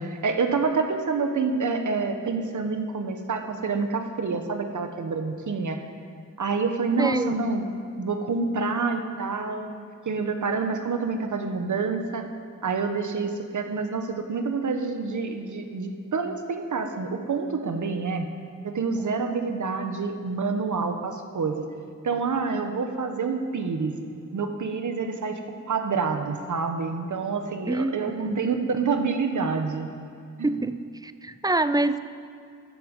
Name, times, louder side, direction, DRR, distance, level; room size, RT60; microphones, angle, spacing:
voice 1, 0.0-5.8 6.4-7.7 8.0-12.3 12.6-18.3 18.6-21.6 22.0-23.9 24.3-25.4 25.7-29.9 30.4-30.5, right 4 dB, 70° right, 6 dB, 1.2 m, -27 dB
voice 2, 7.0-7.3 27.7-27.9 28.2-28.4 30.4-32.0, right 2 dB, 15° right, 12 dB, 0.4 m, -26 dB
14.0 x 12.0 x 5.4 m, 2.5 s
wide cardioid pair, 155°, 32 cm